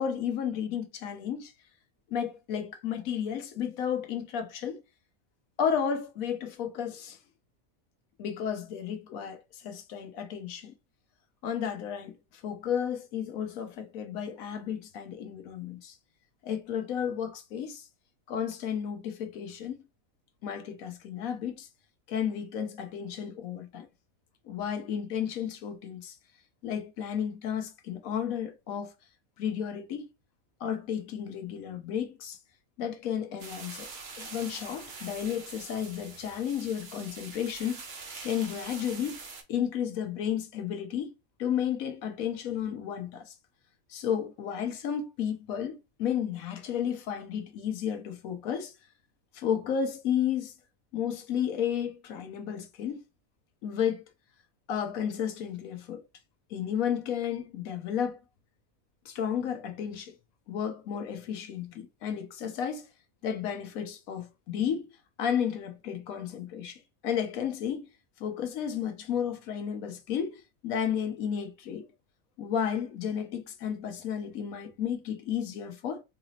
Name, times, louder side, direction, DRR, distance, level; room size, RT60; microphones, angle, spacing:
voice 1, 0.0-1.5 2.1-4.8 5.6-7.2 8.2-10.7 11.4-16.0 16.4-17.9 18.3-19.8 20.4-21.7 22.1-23.9 24.4-26.2 26.6-28.9 29.4-30.1 30.6-32.4 32.8-33.9 34.2-37.8 38.2-39.2 39.5-41.1 41.4-43.3 43.9-48.7 49.3-50.5 50.9-53.0 53.6-54.0 54.7-56.0 56.5-58.2 59.0-60.2 60.5-62.9 63.2-67.9 68.2-71.8 72.4-76.0, left 8 dB, 80° left, 1.2 m, -32 dB
sound 1, 33.4-39.4, right 4 dB, 50° right, 1.1 m, -44 dB
4.1 x 2.9 x 2.6 m
omnidirectional pair, 1.5 m